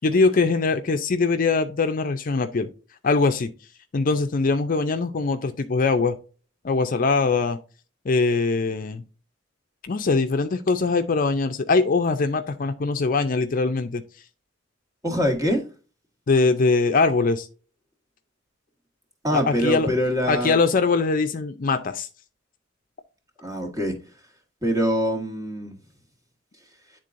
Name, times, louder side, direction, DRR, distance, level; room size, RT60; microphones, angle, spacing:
voice 1, 0.0-2.7 3.0-3.5 3.9-6.2 6.6-7.6 8.1-9.0 9.8-14.0 16.3-17.5 19.3-19.9 20.3-22.1, left 4 dB, 45° left, 0.5 m, -22 dB
voice 2, 15.0-15.6 19.2-20.6 23.4-24.0 24.6-25.8, equal, 20° right, 1.4 m, -24 dB
9.9 x 3.7 x 2.6 m
head